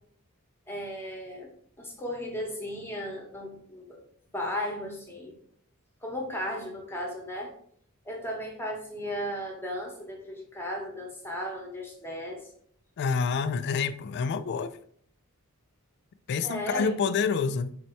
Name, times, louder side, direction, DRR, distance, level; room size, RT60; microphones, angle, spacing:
voice 1, 0.7-1.5 1.8-4.0 4.3-5.4 6.0-7.5 8.0-12.4 16.4-16.9, equal, 10° left, 1.0 m, -35 dB
voice 2, 13.0-14.8 16.3-17.8, left 5 dB, 50° left, 0.3 m, -28 dB
4.2 x 2.7 x 4.5 m
head